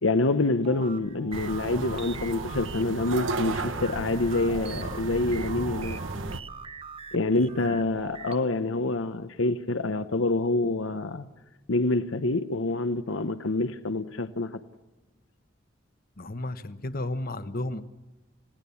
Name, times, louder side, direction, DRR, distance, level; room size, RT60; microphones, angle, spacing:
voice 1, 0.0-6.0 7.1-11.3 11.7-14.6, left 2 dB, 85° left, 1.0 m, -26 dB
sound 1, 0.6-8.4, right 4 dB, 30° right, 0.8 m, -43 dB
sound 2, 1.3-6.4, right 3 dB, 80° right, 1.1 m, -34 dB
voice 2, 7.4-7.7 16.2-17.8, left 2 dB, 50° left, 1.2 m, -33 dB
29.0 x 18.0 x 7.1 m
head